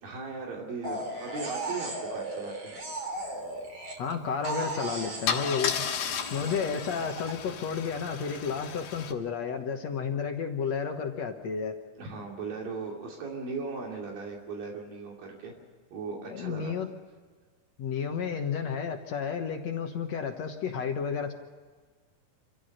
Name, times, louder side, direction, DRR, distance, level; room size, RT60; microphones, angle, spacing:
voice 1, 0.0-2.7 6.3-6.8 11.9-15.5 15.9-16.8, right 4 dB, 75° right, -1 dB, 4.4 m, -38 dB
sound 1, 0.8-4.1 4.4-7.3, right 1 dB, 35° right, 3.8 m, -36 dB
voice 2, 4.0-5.9 6.3-11.8 16.3-16.9 17.8-21.3, left 6 dB, 60° left, 4 dB, 2.1 m, -32 dB
Car / Engine starting / Idling, 4.5-4.7 5.3-9.1, left 7 dB, 80° left, 3.3 m, -34 dB
27.0 x 15.5 x 6.6 m, 1.5 s
omnidirectional pair, 4.1 m